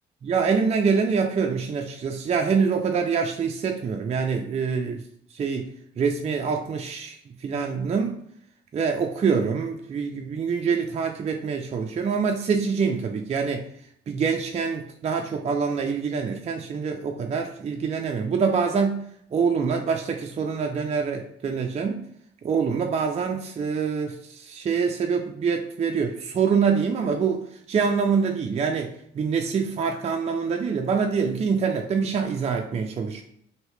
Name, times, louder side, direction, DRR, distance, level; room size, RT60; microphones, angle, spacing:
voice 1, 0.2-5.0 5.3-8.1 8.7-13.7 14.1-19.0 19.3-22.0 22.4-33.2, right 5 dB, 35° right, 3 dB, 0.4 m, -25 dB
2.9 x 2.7 x 3.2 m, 0.69 s
cardioid pair, 90°, 20 cm